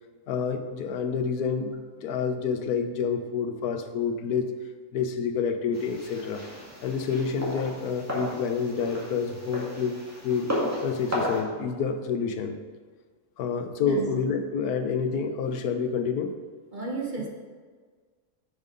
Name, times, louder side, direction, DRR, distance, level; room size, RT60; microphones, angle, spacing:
voice 1, 0.3-4.5 4.9-6.4 6.8-10.5 10.8-12.6 13.4-16.3, left 6 dB, 90° left, 7 dB, 1.3 m, -28 dB
sound 1, 5.7-11.4, left 1 dB, 10° right, 2.1 m, -34 dB
voice 2, 16.7-17.3, right 3 dB, 35° right, 0 dB, 1.2 m, -32 dB
7.3 x 6.6 x 5.2 m, 1.5 s
omnidirectional pair, 1.6 m